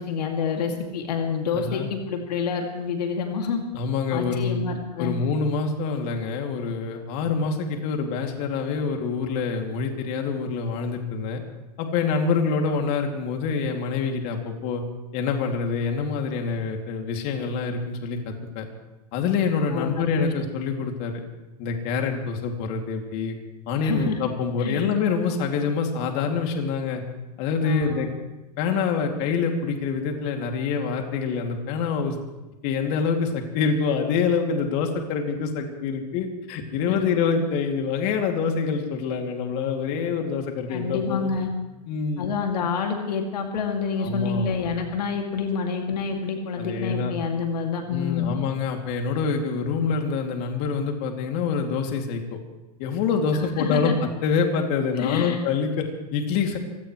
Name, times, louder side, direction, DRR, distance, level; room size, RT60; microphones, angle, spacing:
voice 1, 0.0-3.6 4.1-5.1 19.7-20.3 23.8-24.2 24.6-24.9 27.6-28.1 36.9-37.0 40.7-41.5 42.2-48.3 53.3-54.0 55.0-55.4, left 6 dB, 85° left, 2 dB, 2.5 m, -27 dB
voice 2, 1.5-1.9 3.7-4.6 5.0-11.4 11.8-14.8 15.1-18.7 19.1-21.2 21.6-23.4 23.7-27.0 27.4-28.1 28.6-32.2 32.6-41.3 41.9-42.3 44.0-44.5 46.6-47.1 47.9-52.2 52.8-56.6, left 5 dB, 50° left, 3 dB, 2.6 m, -26 dB
24.5 x 17.5 x 3.2 m, 1.0 s
hypercardioid pair, 125°, 20 cm